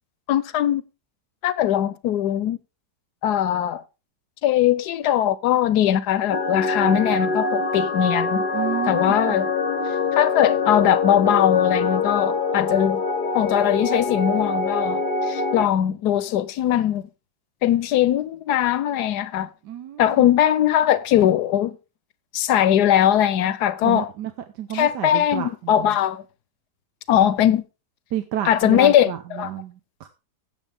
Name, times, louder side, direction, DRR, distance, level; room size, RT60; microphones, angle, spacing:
voice 1, 0.3-0.8 1.4-2.6 3.2-3.8 4.4-8.4 8.8-9.5 10.1-13.0 13.3-17.0 17.6-19.5 20.0-21.8 22.3-24.1 24.7-26.2 27.1-27.6 28.4-29.1 29.4-29.5, left 11 dB, 75° left, 1.2 m, -20 dB
sound 1, 6.3-15.7, left 3 dB, 40° left, 0.8 m, -24 dB
voice 2, 8.5-9.5 19.6-20.3 23.8-25.9 28.1-30.1, right 11 dB, 75° right, 1.4 m, -30 dB
16.5 x 7.2 x 3.5 m
omnidirectional pair, 1.8 m